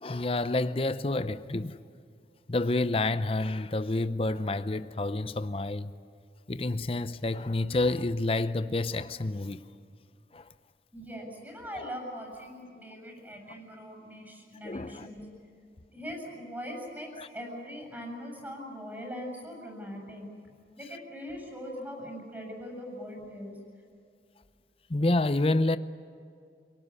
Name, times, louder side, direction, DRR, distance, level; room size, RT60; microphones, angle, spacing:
voice 1, 0.0-1.8 2.5-5.9 6.5-9.6 10.3-10.5 11.7-11.9 14.6-15.1 17.2-17.3 24.9-25.8, left 2 dB, 30° left, 0.7 m, -29 dB
voice 2, 10.9-15.3 15.9-20.3 20.8-23.6, equal, 10° right, 7.1 m, -41 dB
29.0 x 19.0 x 9.8 m
head